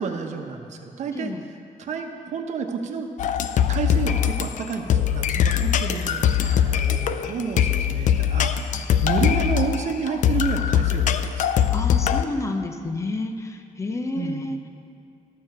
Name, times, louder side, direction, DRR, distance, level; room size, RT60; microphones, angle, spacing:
voice 1, 0.0-1.3 1.8-3.1 3.7-11.1 11.4-11.5 14.1-14.5, right 5 dB, 60° right, 4 dB, 1.0 m, -30 dB
sound 1, 3.2-12.2, left 9 dB, 65° left, 0.5 m, -22 dB
voice 2, 11.7-14.6, left 2 dB, 20° left, 6 dB, 0.7 m, -29 dB
13.0 x 7.0 x 6.6 m, 2.5 s
wide cardioid pair, 170°, 14 cm